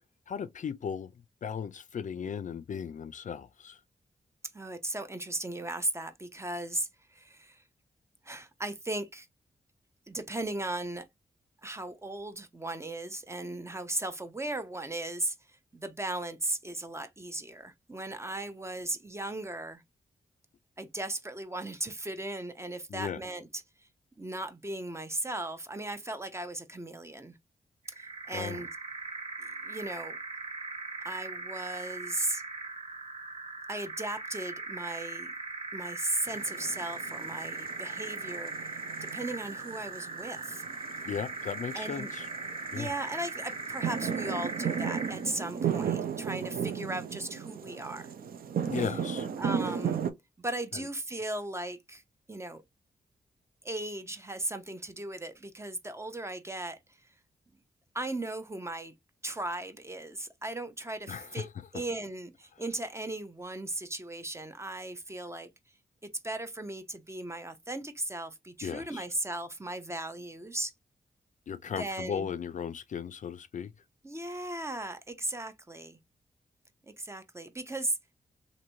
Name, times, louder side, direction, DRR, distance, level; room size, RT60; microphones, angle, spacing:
voice 1, 0.3-1.1 1.4-3.8 22.9-23.2 28.3-28.6 41.0-42.3 42.7-42.9 48.7-49.3 50.7-50.9 61.1-61.5 61.7-61.8 68.6-69.1 71.5-73.7, left 7 dB, 55° left, 0.4 m, -36 dB
voice 2, 4.5-7.6 8.2-9.3 10.1-11.1 11.6-15.3 15.7-19.8 20.8-23.5 24.2-27.3 27.9-28.7 29.4-30.2 31.0-32.4 33.7-35.3 35.7-38.5 39.1-40.6 41.7-42.1 42.7-48.1 49.4-50.0 50.4-52.0 52.3-52.6 53.6-56.8 57.9-58.9 59.2-61.5 61.7-65.5 66.0-70.7 71.8-72.3 74.0-76.0 76.8-78.0, right 2 dB, 15° right, 0.6 m, -37 dB
sound 1, 27.9-45.3, right 3 dB, 40° right, 1.2 m, -39 dB
sound 2, 36.3-50.1, right 7 dB, 70° right, 0.5 m, -36 dB
3.0 x 2.6 x 2.7 m
cardioid pair, 60°, 15 cm